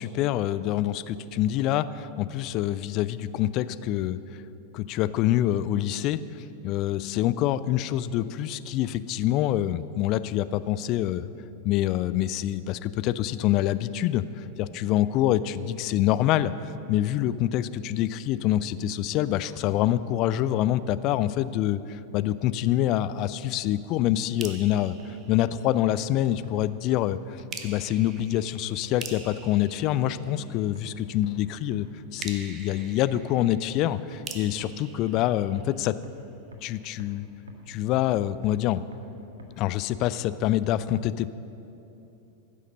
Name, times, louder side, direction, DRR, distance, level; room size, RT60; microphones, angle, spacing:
voice 1, 0.0-4.2 4.7-6.2 6.6-11.3 11.6-25.0 25.3-31.9 32.1-35.9 36.6-37.3 37.7-38.8 39.6-41.3, left 13 dB, 40° left, 15 dB, 0.4 m, -26 dB
sound 1, 24.4-26.1 27.5-30.8 32.2-36.1, right 5 dB, 30° right, 1.0 m, -44 dB
sound 2, 24.5-24.6 25.0-25.1 25.5-25.6 26.0-26.1 26.4-26.5 26.9-27.0 27.4-27.5 27.9-28.0 28.4-28.5 28.8-28.9 29.3-29.4 29.8-29.9 30.3-30.4 30.8-30.9 31.2-31.3 31.7-31.8 32.2-32.3 32.7-32.8 33.2-33.3 33.6-33.7 34.1-34.2 34.6-34.7 35.1-35.2 35.6-35.7 36.0-36.1 36.5-36.6 37.0-37.1 37.5-37.6 38.0-38.1 38.4-38.5 38.9-39.0 39.4-39.5, right 1 dB, 65° right, 1.5 m, -43 dB
15.5 x 6.6 x 6.5 m, 2.9 s
figure-of-eight pair, 90°, 0 cm